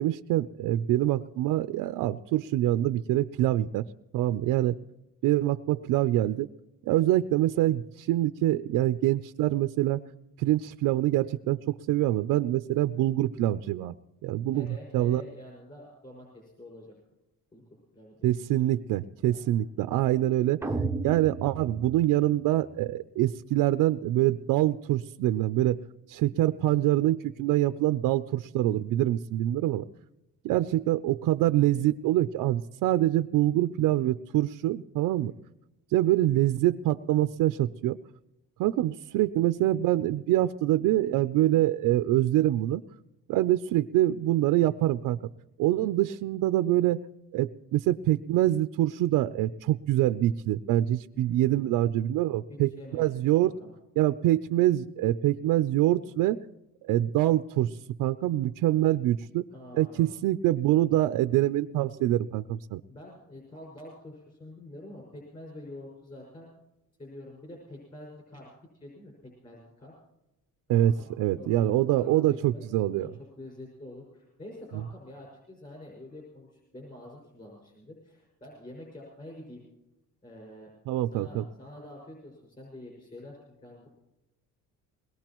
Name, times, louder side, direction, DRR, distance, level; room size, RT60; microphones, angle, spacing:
voice 1, 0.0-3.9 4.1-4.8 5.2-6.5 6.8-10.0 10.4-13.9 14.2-14.7 14.9-15.2 18.2-20.7 21.0-25.8 26.1-29.8 30.4-35.3 35.9-38.0 38.6-42.8 43.3-45.2 45.6-47.0 47.3-53.5 54.0-56.4 56.8-59.4 59.7-62.8 70.7-73.1 80.9-81.4, right 14 dB, 75° right, 11 dB, 0.5 m, -25 dB
voice 2, 14.5-16.9 17.5-17.6 17.9-18.6 19.3-19.4 35.2-35.4 51.1-51.8 52.5-53.7 59.5-60.1 62.9-66.5 67.0-68.5 68.7-69.9 70.7-72.2 72.5-79.7 80.2-80.7 81.1-83.9, left 1 dB, 25° left, -2 dB, 5.7 m, -47 dB
sound 1, 20.6-22.7, right 3 dB, 10° right, 0.6 m, -34 dB
22.0 x 19.5 x 3.0 m, 0.94 s
cardioid pair, 135°, 33 cm